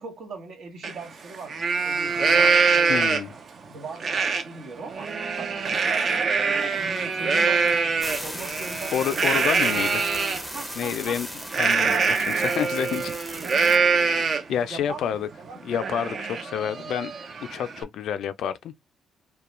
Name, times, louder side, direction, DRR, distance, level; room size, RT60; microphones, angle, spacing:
voice 1, 0.0-3.2 3.6-5.1 5.4-7.7 8.2-9.4 10.5-11.2 11.6-12.8 14.7-15.7, right 4 dB, 65° right, 1.0 m, -40 dB
Livestock farm animals working animals, 0.8-0.9 1.3-3.4 4.0-4.4 4.8-10.4 11.5-14.6 15.0-15.1 15.5-17.8, right 5 dB, 45° right, 0.5 m, -24 dB
voice 2, 2.9-3.3 8.9-10.0 10.8-11.3 11.6-13.7 14.5-15.3 15.6-17.1 17.5-18.7, left 9 dB, 70° left, 0.3 m, -29 dB
sound 1, 8.0-13.8, equal, 5° right, 0.6 m, -37 dB
2.2 x 2.2 x 3.0 m
cardioid pair, 100°, 0 cm